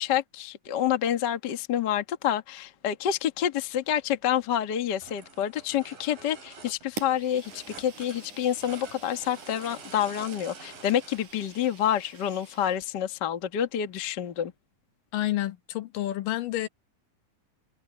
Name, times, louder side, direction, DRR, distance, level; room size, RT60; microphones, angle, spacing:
voice 1, 0.0-14.5, left 10 dB, 45° left, 1.4 m, -28 dB
sound 1, 3.9-4.0 4.8-4.9 5.0-11.3 11.8-11.9, right 4 dB, 75° right, 6.6 m, -47 dB
Fire, 7.0-12.9, right 5 dB, 60° right, 5.9 m, -46 dB
voice 2, 15.1-16.7, left 14 dB, 75° left, 2.7 m, -29 dB
omnidirectional pair, 3.9 m